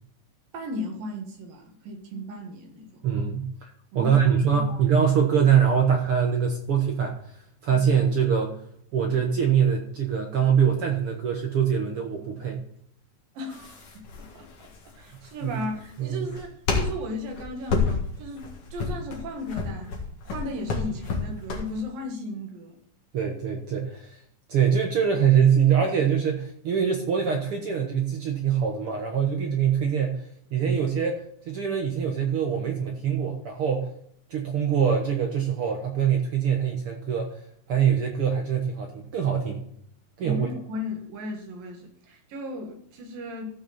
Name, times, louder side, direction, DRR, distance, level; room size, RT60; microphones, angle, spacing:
voice 1, 0.5-3.0 3.9-4.8 13.4-20.0 20.3-22.8 40.2-43.5, left 1 dB, 80° right, 2 dB, 3.6 m, -36 dB
voice 2, 3.0-3.7 3.9-7.2 7.6-8.5 8.9-12.6 15.4-15.5 16.0-16.3 23.1-24.2 24.5-30.2 30.5-33.9 34.3-37.4 37.7-39.6 40.2-40.5, right 7 dB, 55° right, 2 dB, 1.6 m, -23 dB
sound 1, 13.5-21.8, left 4 dB, 50° left, 2.4 m, -30 dB
15.0 x 6.1 x 4.3 m, 0.66 s
omnidirectional pair, 3.9 m